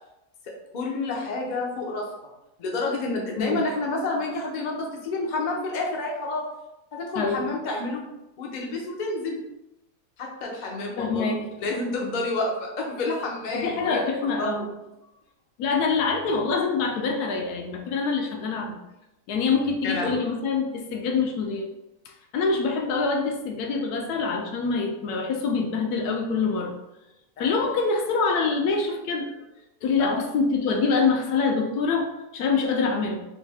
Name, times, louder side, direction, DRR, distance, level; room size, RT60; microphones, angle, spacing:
voice 1, 0.4-2.1 2.6-6.4 6.9-8.0 8.4-9.4 10.2-11.3 11.6-14.0 14.4-14.7 19.8-20.2 30.0-30.2, left 2 dB, 55° left, -1 dB, 0.5 m, -29 dB
voice 2, 7.2-7.5 11.0-11.5 13.5-14.7 15.6-18.8 19.3-21.7 22.3-26.7 27.4-29.3 29.8-33.2, left 4 dB, 80° left, 2 dB, 1.1 m, -25 dB
3.2 x 2.6 x 3.3 m, 0.94 s
omnidirectional pair, 1.6 m